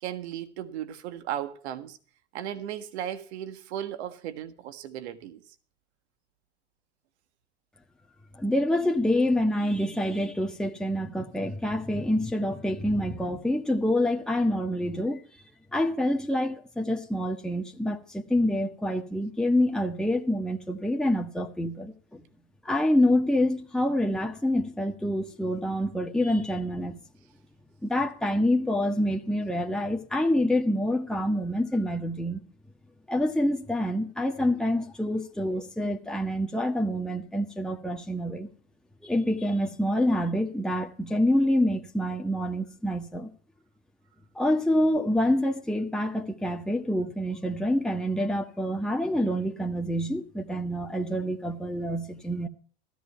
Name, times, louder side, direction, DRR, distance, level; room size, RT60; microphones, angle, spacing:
voice 1, 0.0-2.0 2.3-5.4, right 11 dB, 80° right, 1.6 m, -36 dB
voice 2, 8.3-15.2 15.7-22.2 22.6-27.0 27.8-32.4 33.1-38.5 39.0-43.3 44.3-52.5, left 1 dB, ahead, 1.4 m, -27 dB
14.0 x 13.5 x 4.5 m
hypercardioid pair, 90°, 33 cm